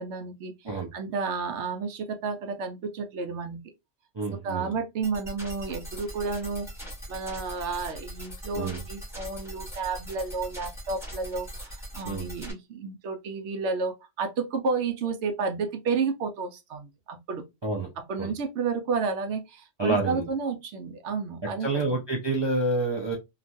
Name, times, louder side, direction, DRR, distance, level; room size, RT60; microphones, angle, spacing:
voice 1, 0.0-3.6 4.4-6.7 7.1-17.4 18.1-22.0, right 4 dB, 70° right, 0.9 m, -31 dB
voice 2, 4.1-4.7 8.5-8.8 12.0-12.3 17.6-17.9 18.2-18.3 19.8-20.3 21.6-23.2, right 2 dB, 40° right, 0.4 m, -28 dB
sound 1, 5.0-12.5, right 1 dB, ahead, 1.2 m, -41 dB
2.9 x 2.4 x 2.4 m
omnidirectional pair, 1.3 m